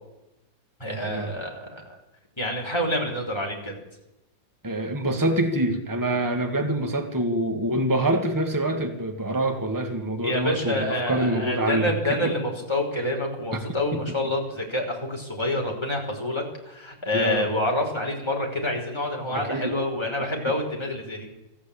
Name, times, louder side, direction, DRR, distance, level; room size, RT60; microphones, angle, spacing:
voice 1, 0.8-2.0 2.4-3.8 10.2-21.3, left 1 dB, 15° left, 0 dB, 5.4 m, -27 dB
voice 2, 4.6-12.3 13.5-13.6 13.9-14.0 17.1-17.5 19.3-19.7 20.2-20.3, right 1 dB, 10° right, 4 dB, 2.2 m, -26 dB
24.5 x 14.5 x 8.8 m, 0.95 s
omnidirectional pair, 2.1 m